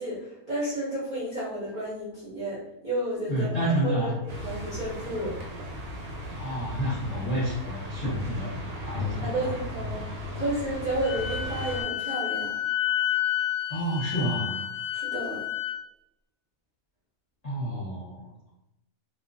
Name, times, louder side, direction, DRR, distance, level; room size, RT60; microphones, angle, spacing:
voice 1, 0.0-5.3 9.2-10.0 10.3-12.5 14.9-15.4, right 1 dB, 40° right, -9 dB, 0.6 m, -32 dB
voice 2, 3.3-4.1 6.4-8.5 8.8-9.5 13.7-14.6 17.4-18.3, right 1 dB, 35° left, -9 dB, 0.8 m, -29 dB
sound 1, 4.3-11.8, left 1 dB, 85° right, 1.1 m, -36 dB
Wind instrument woodwind instrument, 11.0-15.8, left 11 dB, 70° left, 0.9 m, -30 dB
2.3 x 2.2 x 2.5 m, 0.87 s
omnidirectional pair, 1.6 m